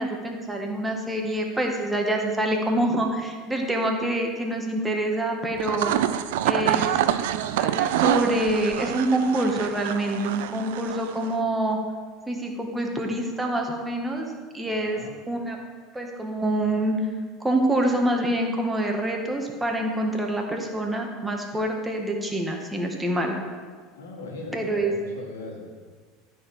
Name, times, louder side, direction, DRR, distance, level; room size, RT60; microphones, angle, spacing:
voice 1, 0.0-5.9 6.4-6.9 7.6-11.8 12.3-14.3 14.5-15.0 15.3-15.6 15.9-17.0 17.4-23.3 24.5-24.9, right 1 dB, 10° right, 1 dB, 1.6 m, -26 dB
sound 1, 5.5-11.4, right 11 dB, 65° right, 0.4 m, -26 dB
voice 2, 14.7-15.1 23.9-25.7, left 2 dB, 70° left, 0 dB, 1.9 m, -39 dB
12.5 x 4.6 x 4.9 m, 1.5 s
figure-of-eight pair, 75°, 0 cm